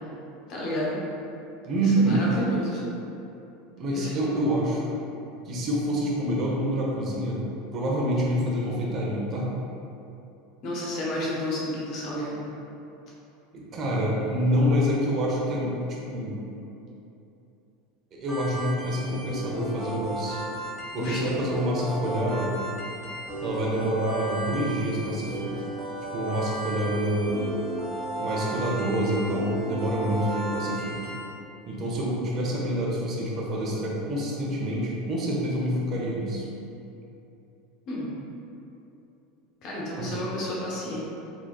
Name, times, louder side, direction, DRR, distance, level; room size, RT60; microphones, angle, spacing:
voice 1, 0.5-1.0 1.8-2.8 3.9-4.1 10.6-12.4 21.0-21.2 37.9-38.1 39.6-41.0, equal, 55° left, -5 dB, 1.0 m, -31 dB
voice 2, 1.6-2.2 3.8-4.9 5.5-7.4 7.7-9.5 13.5-15.7 16.1-16.4 18.1-20.4 20.9-22.5 23.4-25.5 26.1-27.4 28.2-31.0 31.7-36.5 40.0-40.2, equal, 40° right, -4 dB, 0.9 m, -27 dB
sound 1, 18.3-31.2, right 1 dB, ahead, 1.4 m, -34 dB
3.8 x 3.0 x 2.4 m, 2.8 s
hypercardioid pair, 90°, 0 cm